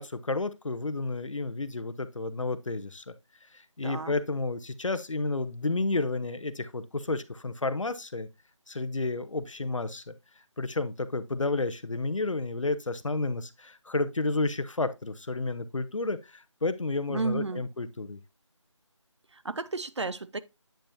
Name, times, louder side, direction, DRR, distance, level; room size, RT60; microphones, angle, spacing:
voice 1, 0.0-3.1 3.8-8.3 8.7-10.1 10.6-18.2, left 3 dB, 75° left, 0.9 m, -31 dB
voice 2, 3.8-4.1 17.1-17.7 19.3-20.4, right 3 dB, 60° right, 0.7 m, -32 dB
8.7 x 5.7 x 2.6 m
figure-of-eight pair, 170°, 16 cm